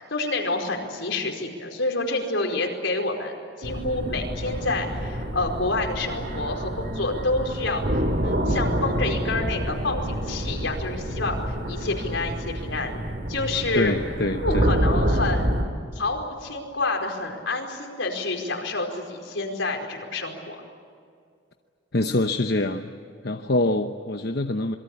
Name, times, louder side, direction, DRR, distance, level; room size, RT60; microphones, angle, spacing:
voice 1, 0.1-7.8 8.2-12.9 13.3-13.9 14.4-15.5 15.9-20.6, left 2 dB, 80° left, 2 dB, 4.8 m, -28 dB
sound 1, 3.6-15.6, equal, 50° right, 2.8 m, -27 dB
voice 2, 13.7-14.7 21.9-22.9 23.2-24.7, left 2 dB, 55° left, 6 dB, 0.9 m, -25 dB
27.0 x 23.0 x 8.6 m, 2.3 s
head